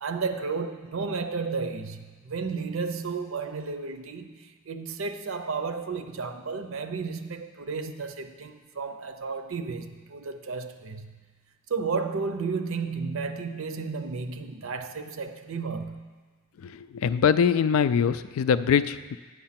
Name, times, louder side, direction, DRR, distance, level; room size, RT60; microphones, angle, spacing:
voice 1, 0.0-11.3 11.7-16.1, right 4 dB, 70° right, 8 dB, 0.6 m, -33 dB
voice 2, 16.6-19.2, left 7 dB, 75° left, 14 dB, 0.3 m, -23 dB
8.6 x 6.6 x 5.8 m, 1.4 s
head